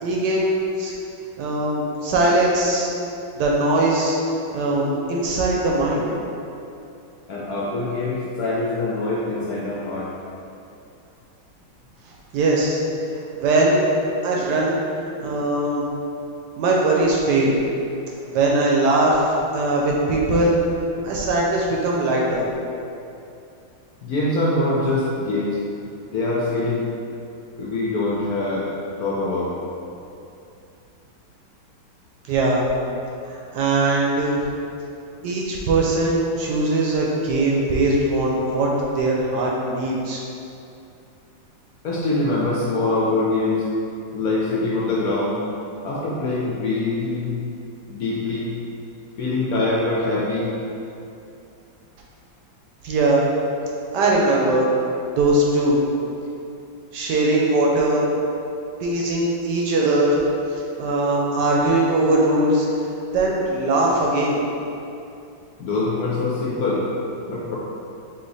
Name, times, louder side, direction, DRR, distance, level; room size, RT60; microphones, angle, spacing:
voice 1, 0.0-0.9 1.4-2.9 3.4-4.2 4.5-6.0 12.3-12.8 13.4-14.0 14.2-14.8 15.2-15.9 16.6-17.5 18.3-20.5 21.0-22.4 32.3-32.6 33.3-34.4 35.2-40.2 52.8-53.2 53.9-54.7 55.1-55.8 56.9-58.1 58.8-60.2 60.8-62.7 63.1-64.4, right 2 dB, 70° right, -3 dB, 1.1 m, -20 dB
voice 2, 7.3-10.1 24.0-25.6 26.1-26.9 27.6-28.7 29.0-29.5 41.8-43.7 44.1-45.4 45.8-47.4 47.9-48.6 49.2-50.5 65.6-66.9 67.3-67.6, left 2 dB, 70° left, -5 dB, 0.9 m, -24 dB
3.8 x 2.8 x 4.0 m, 2.7 s
omnidirectional pair, 2.0 m